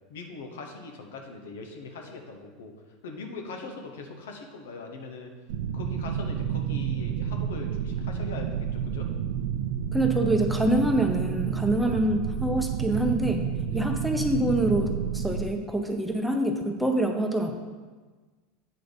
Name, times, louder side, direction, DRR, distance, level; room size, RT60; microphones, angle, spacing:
voice 1, 0.1-2.7 3.0-5.3 5.7-9.1 13.7-13.8, left 3 dB, 85° left, 3 dB, 1.0 m, -41 dB
sound 1, 5.5-15.5, right 8 dB, 75° right, 0.5 m, -30 dB
voice 2, 9.9-13.4 13.7-17.5, right 1 dB, 5° right, 3 dB, 0.8 m, -25 dB
7.7 x 3.9 x 5.1 m, 1.4 s
supercardioid pair, 110°, 0 cm